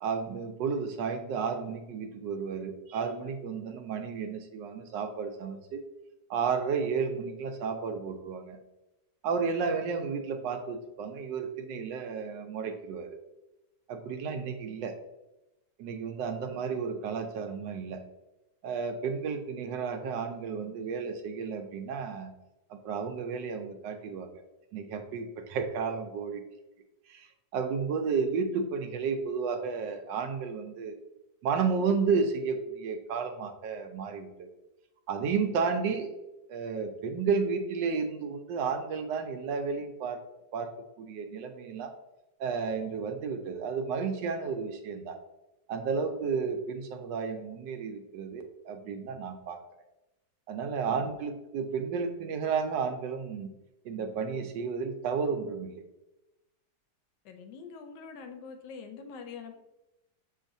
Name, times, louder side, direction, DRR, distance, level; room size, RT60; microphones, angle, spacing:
voice 1, 0.0-5.8 6.3-8.6 9.2-13.2 13.9-14.9 15.8-18.0 18.6-22.3 22.7-24.3 24.7-26.4 27.1-31.0 31.4-34.5 35.1-36.1 36.5-40.2 40.5-40.7 41.0-41.9 42.4-45.2 45.7-49.6 50.5-53.5 53.8-55.8, right 5 dB, 90° right, 6 dB, 1.3 m, -32 dB
voice 2, 57.2-59.6, left 5 dB, 80° left, 6 dB, 1.3 m, -44 dB
6.4 x 3.2 x 2.6 m, 0.97 s
omnidirectional pair, 1.9 m